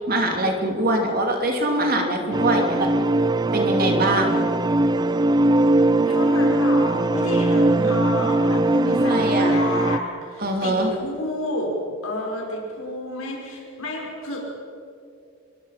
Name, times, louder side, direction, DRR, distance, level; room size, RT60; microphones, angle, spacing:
voice 1, 0.1-2.9 3.5-4.4 8.9-9.6 10.4-10.9, right 1 dB, 45° right, 3 dB, 3.0 m, -23 dB
sound 1, 2.3-10.0, right 2 dB, 20° right, 0.5 m, -20 dB
voice 2, 6.1-11.8 12.0-14.4, left 1 dB, 85° left, -2 dB, 5.7 m, -30 dB
25.5 x 23.0 x 5.9 m, 2.4 s
head